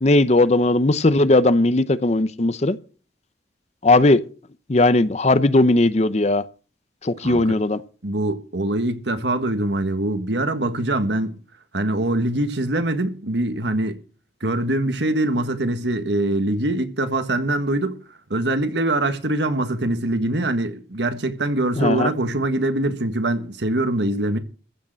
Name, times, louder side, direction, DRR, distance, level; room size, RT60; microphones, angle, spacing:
voice 1, 0.0-2.8 3.8-4.2 4.7-6.4 7.0-7.8 21.8-22.1, left 2 dB, 40° left, 0.7 m, -17 dB
voice 2, 7.2-7.6 8.0-11.3 11.7-14.0 14.4-18.0 18.3-24.4, right 1 dB, 75° right, 1.6 m, -23 dB
15.0 x 6.6 x 7.5 m
head